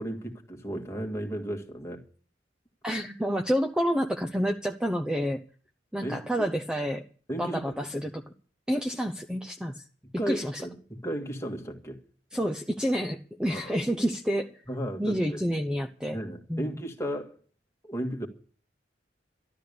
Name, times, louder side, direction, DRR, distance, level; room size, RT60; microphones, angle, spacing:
voice 1, 0.0-2.0 6.0-6.5 7.3-7.8 10.2-12.0 13.5-13.8 14.7-15.4 16.1-17.4 17.8-18.3, right 1 dB, 15° left, 2.0 m, -34 dB
voice 2, 2.8-5.4 5.9-7.1 7.4-8.3 8.7-9.8 10.3-10.6 12.3-14.5 15.0-16.2 16.5-16.8, equal, 5° right, 0.8 m, -29 dB
13.0 x 12.0 x 6.8 m
head